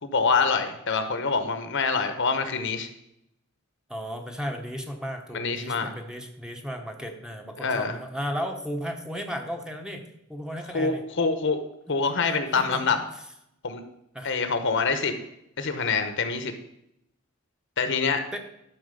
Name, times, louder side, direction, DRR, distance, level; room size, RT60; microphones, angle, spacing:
voice 1, 0.0-2.9 5.3-5.9 7.6-8.0 10.7-11.6 11.9-13.0 13.6-13.8 14.2-15.1 15.6-16.5 17.8-18.2, left 4 dB, 60° left, 8 dB, 1.1 m, -25 dB
voice 2, 3.9-10.0 10.3-11.0 12.0-12.1 12.5-12.8 14.1-14.3 18.3-18.4, equal, 5° right, 4 dB, 1.0 m, -34 dB
12.0 x 4.4 x 6.8 m, 0.78 s
head